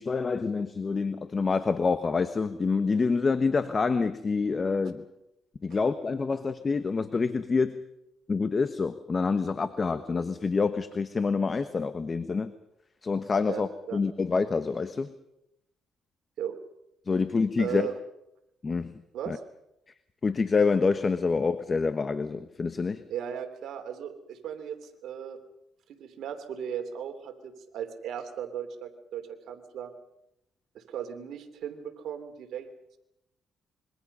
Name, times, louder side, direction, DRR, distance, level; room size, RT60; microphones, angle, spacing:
voice 1, 0.0-5.0 5.6-7.8 8.3-12.5 13.0-15.1 17.1-17.9 18.6-19.0 19.3-19.4 20.2-23.0, left 4 dB, 35° left, 11 dB, 1.2 m, -27 dB
voice 2, 13.5-14.0 16.4-16.6 17.6-17.9 19.1-19.4 23.1-25.4 25.9-29.9 30.7-32.7, right 9 dB, 75° right, 6 dB, 3.2 m, -37 dB
26.0 x 23.5 x 5.6 m, 0.84 s
cardioid pair, 90°, 0 cm